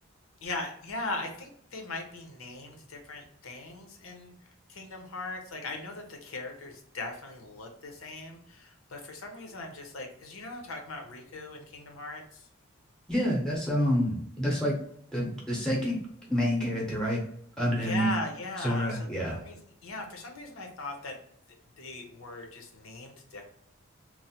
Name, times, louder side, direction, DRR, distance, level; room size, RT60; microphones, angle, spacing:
voice 1, 0.4-4.3 4.7-12.5 17.8-21.1 21.8-23.4, left 2 dB, 85° left, 3 dB, 0.7 m, -39 dB
voice 2, 13.1-14.7 15.1-16.0 16.3-17.2 17.6-18.1 18.6-19.4, equal, 5° left, -3 dB, 0.7 m, -28 dB
3.0 x 2.1 x 2.8 m, 0.68 s
head